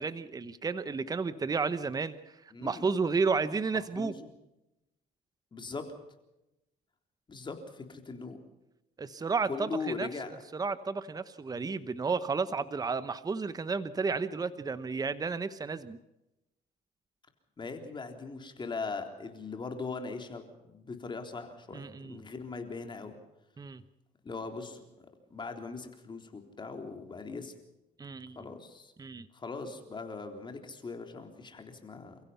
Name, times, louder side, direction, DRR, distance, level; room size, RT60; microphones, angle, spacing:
voice 1, 0.0-4.1 9.0-10.1 10.5-16.0 21.7-22.2 23.6-23.8 28.0-28.4 29.0-29.3, right 4 dB, 20° right, 13 dB, 1.1 m, -32 dB
voice 2, 2.5-2.9 4.0-4.1 5.5-5.9 7.3-8.4 9.5-10.4 17.6-23.1 24.2-24.8 25.3-27.5 28.4-28.9 29.3-32.2, left 4 dB, 30° left, 5 dB, 3.6 m, -40 dB
29.0 x 16.0 x 5.8 m, 0.92 s
cardioid pair, 110°, 17 cm